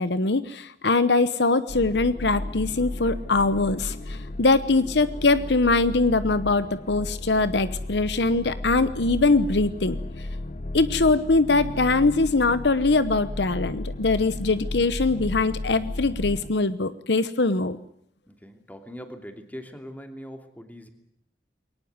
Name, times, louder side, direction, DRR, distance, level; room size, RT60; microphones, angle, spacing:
voice 1, 0.0-10.0 10.7-17.8, left 3 dB, 70° left, 13 dB, 1.0 m, -22 dB
sound 1, 1.7-16.5, left 1 dB, 40° left, 0.9 m, -34 dB
voice 2, 18.3-20.9, equal, 10° left, 6 dB, 2.8 m, -41 dB
22.5 x 19.0 x 9.6 m, 0.73 s
head